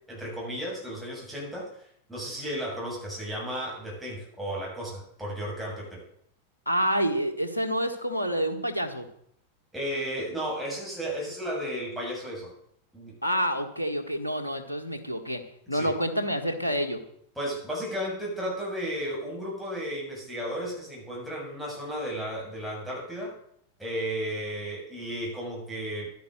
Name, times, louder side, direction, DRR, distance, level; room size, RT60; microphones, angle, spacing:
voice 1, 0.1-1.7 2.1-6.0 9.7-12.5 12.9-13.1 15.7-15.9 17.4-23.4 23.8-26.1, equal, ahead, -5 dB, 7.4 m, -34 dB
voice 2, 6.6-9.1 13.2-15.4 15.7-17.0, equal, 85° left, 5 dB, 1.7 m, -28 dB
12.0 x 10.5 x 6.5 m, 0.68 s
figure-of-eight pair, 90°, 0 cm